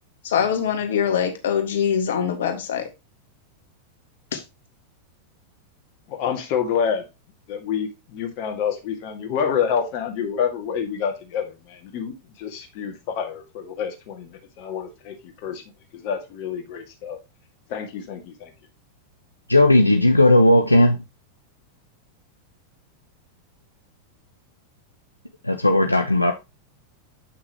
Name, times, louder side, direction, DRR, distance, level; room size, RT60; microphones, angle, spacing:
voice 1, 0.2-2.9 4.3-4.4, left 8 dB, 60° left, 1.7 m, -23 dB
voice 2, 6.1-7.1 7.5-15.2 15.4-15.6 15.9-17.2 17.7-18.5, left 7 dB, 45° left, 2.0 m, -28 dB
voice 3, 19.5-21.0 25.4-26.3, left 1 dB, 85° left, 0.7 m, -16 dB
8.2 x 6.0 x 3.0 m
figure-of-eight pair, 90°, 0 cm